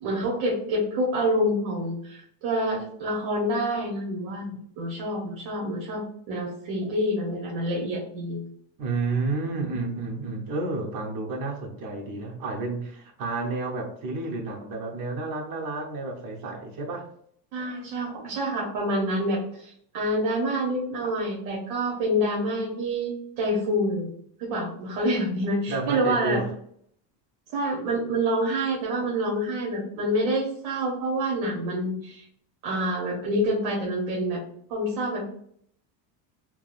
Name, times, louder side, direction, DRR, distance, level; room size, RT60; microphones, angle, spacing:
voice 1, 0.0-8.4 17.5-24.1 24.4-26.4 27.5-32.3 32.6-34.4 34.7-35.3, equal, 60° right, -2 dB, 1.0 m, -27 dB
voice 2, 8.8-17.1 25.7-26.5, right 3 dB, 45° right, 1 dB, 0.9 m, -30 dB
3.5 x 2.0 x 2.4 m, 0.65 s
supercardioid pair, 125°, 50 cm